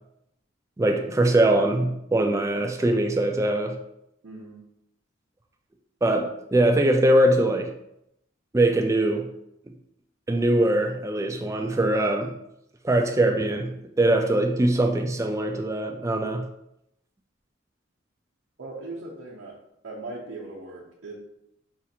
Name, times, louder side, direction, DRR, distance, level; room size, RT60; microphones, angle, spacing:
voice 1, 0.8-3.8 6.0-7.7 8.5-9.3 10.3-12.3 12.8-16.4, right 1 dB, 15° right, 4 dB, 0.3 m, -22 dB
voice 2, 4.2-4.7 18.6-19.6 19.8-21.1, right 2 dB, 80° right, -7 dB, 0.9 m, -39 dB
5.6 x 2.4 x 2.8 m, 0.80 s
head